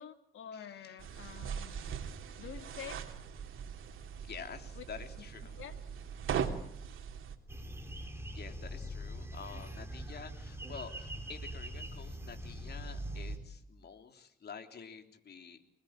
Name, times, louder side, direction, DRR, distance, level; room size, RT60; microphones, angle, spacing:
voice 1, 0.0-1.8 2.4-3.0 4.7-4.8 5.2-5.3 5.6-5.8, left 9 dB, 80° left, 7 dB, 2.7 m, -47 dB
voice 2, 0.5-1.0 1.6-1.8 2.4-2.5 4.2-5.6 8.3-15.6, left 6 dB, 55° left, 6 dB, 3.5 m, -49 dB
sound 1, 1.0-7.4, right 7 dB, 80° right, 2.9 m, -40 dB
sound 2, 7.5-13.4, right 1 dB, 10° right, 4.9 m, -42 dB
26.5 x 20.5 x 9.1 m, 0.72 s
cardioid pair, 110°, 20 cm